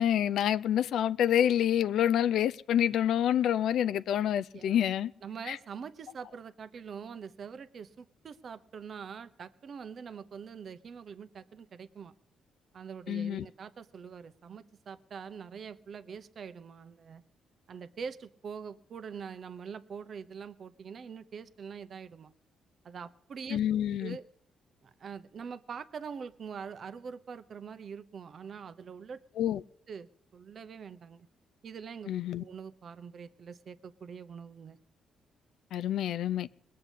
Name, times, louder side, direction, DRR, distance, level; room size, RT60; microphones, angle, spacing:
voice 1, 0.0-5.1 5.5-5.6 13.1-13.5 23.5-24.2 29.4-29.6 32.1-32.4 35.7-36.5, left 10 dB, 75° left, 0.5 m, -27 dB
voice 2, 4.5-4.9 5.2-12.1 12.7-17.2 17.7-22.3 22.8-23.6 24.0-24.2 24.8-29.2 29.9-31.3 31.6-32.1 32.4-34.8, right 6 dB, 50° right, 1.0 m, -44 dB
20.5 x 7.7 x 8.4 m
cardioid pair, 90°, 0 cm